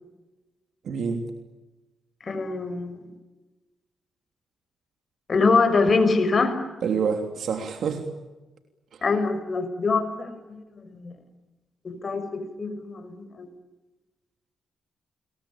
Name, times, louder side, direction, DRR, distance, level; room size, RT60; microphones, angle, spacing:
voice 1, 0.8-1.3 6.8-8.0 8.9-9.0, right 6 dB, 70° right, 5 dB, 3.2 m, -27 dB
voice 2, 2.2-3.0 5.3-6.6 9.0-10.3 10.8-11.1 11.8-13.5, left 4 dB, 45° left, 9 dB, 6.1 m, -24 dB
29.0 x 22.0 x 8.8 m, 1.1 s
cardioid pair, 80°, 0 cm